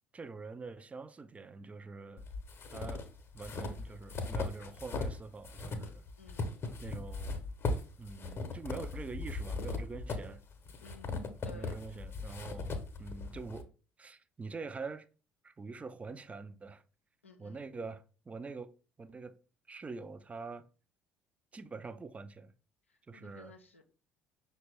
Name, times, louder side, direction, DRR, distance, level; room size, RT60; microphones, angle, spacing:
voice 1, 0.1-2.2 2.7-3.0 3.3-6.1 6.8-7.4 8.0-10.4 11.5-13.7 14.0-15.1 15.4-16.8 17.4-18.7 19.0-19.4 19.7-20.7 21.5-22.5 23.1-23.5, right 4 dB, 20° right, 0.4 m, -45 dB
sound 1, 2.2-5.2 5.4-13.6, left 3 dB, 40° left, 0.7 m, -38 dB
voice 2, 6.2-6.5 10.8-11.8 17.2-17.7 22.9-23.8, left 3 dB, 90° left, 0.5 m, -56 dB
5.7 x 2.1 x 3.3 m
figure-of-eight pair, 55°, 7 cm